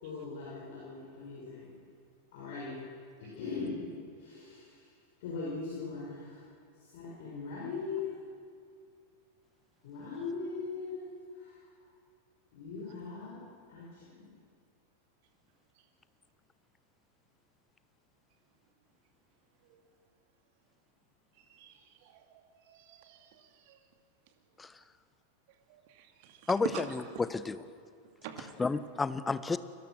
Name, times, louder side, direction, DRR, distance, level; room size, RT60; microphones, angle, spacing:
voice 1, 0.0-1.7 2.3-2.8 3.2-3.8 4.2-4.9 5.2-6.4 6.9-8.2 9.8-11.1 11.4-11.6 12.5-13.4 13.7-14.3, left 4 dB, 50° left, -5 dB, 5.8 m, -40 dB
voice 2, 21.5-23.8 25.7-26.8 28.2-28.5, right 10 dB, 50° right, 5 dB, 2.6 m, -45 dB
voice 3, 26.5-27.6 28.6-29.6, left 4 dB, 15° left, 14 dB, 1.0 m, -31 dB
29.5 x 23.0 x 6.4 m, 2.3 s
figure-of-eight pair, 90°, 0 cm